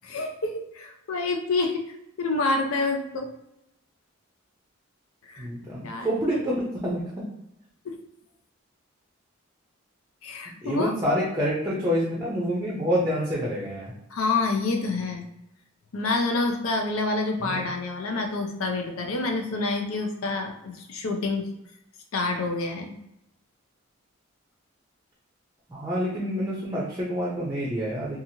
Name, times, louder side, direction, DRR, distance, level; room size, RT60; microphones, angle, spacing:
voice 1, 0.0-1.8 2.2-3.3 5.3-5.5 5.8-6.4 7.8-8.0 10.2-10.9 14.1-15.3 15.9-21.5 22.1-22.9, left 3 dB, 85° left, 3 dB, 0.5 m, -28 dB
voice 2, 5.4-7.3 10.6-13.9 17.4-17.7 25.7-28.2, equal, 15° right, -5 dB, 0.5 m, -27 dB
2.8 x 2.4 x 2.7 m, 0.84 s
head